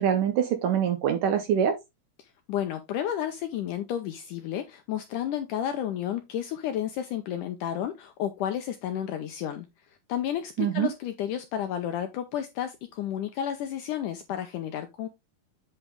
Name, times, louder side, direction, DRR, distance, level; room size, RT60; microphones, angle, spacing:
voice 1, 0.0-1.8 10.6-10.9, right 9 dB, 70° right, 2.2 m, -24 dB
voice 2, 2.5-9.7 10.1-15.1, left 10 dB, 75° left, 2.0 m, -31 dB
8.4 x 5.6 x 3.4 m
omnidirectional pair, 4.3 m